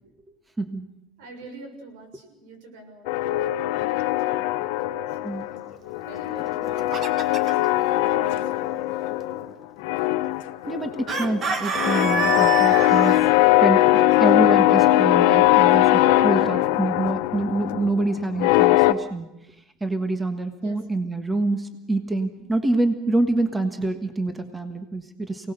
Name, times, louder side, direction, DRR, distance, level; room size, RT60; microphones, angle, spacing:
voice 1, 0.6-0.9 5.2-5.5 10.6-13.3 13.6-19.3 19.8-25.5, right 2 dB, 10° right, 8 dB, 1.5 m, -26 dB
voice 2, 1.2-3.2 3.6-4.5 5.1-5.5 6.1-7.5 7.9-8.9 20.0-20.1 20.6-21.0, right 2 dB, 80° right, 5 dB, 6.3 m, -46 dB
sound 1, 3.1-5.6 5.9-9.5 9.8-18.9, left 16 dB, 75° left, 0.9 m, -20 dB
Chicken rooster, 6.5-7.7 11.1-13.2, right 5 dB, 30° right, 1.7 m, -27 dB
28.0 x 18.5 x 6.7 m, 0.88 s
cardioid pair, 160°, 0 cm